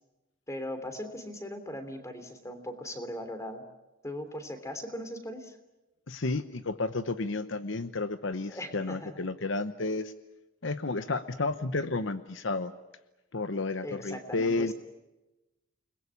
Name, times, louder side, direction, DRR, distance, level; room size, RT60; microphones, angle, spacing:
voice 1, 0.5-3.6 4.0-5.6 8.5-9.3 13.8-14.7, left 1 dB, 15° left, 8 dB, 3.2 m, -39 dB
voice 2, 6.1-10.1 10.6-12.7 13.3-14.7, left 3 dB, 65° left, 11 dB, 0.9 m, -31 dB
29.5 x 20.5 x 8.5 m, 1.0 s
head